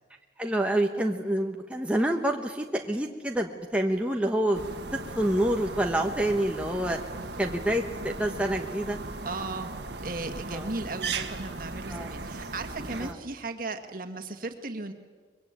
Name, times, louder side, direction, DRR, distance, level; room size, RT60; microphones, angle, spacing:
voice 1, 0.4-4.6 5.1-7.0 7.4-9.0 10.5-10.7 11.9-12.1 13.0-13.1, right 1 dB, 5° right, 2 dB, 1.2 m, -27 dB
sound 1, 4.5-13.1, right 3 dB, 65° right, 1.6 m, -37 dB
voice 2, 9.2-9.7 10.0-14.9, right 3 dB, 45° right, 6 dB, 1.9 m, -36 dB
24.0 x 22.5 x 9.0 m, 1.5 s
head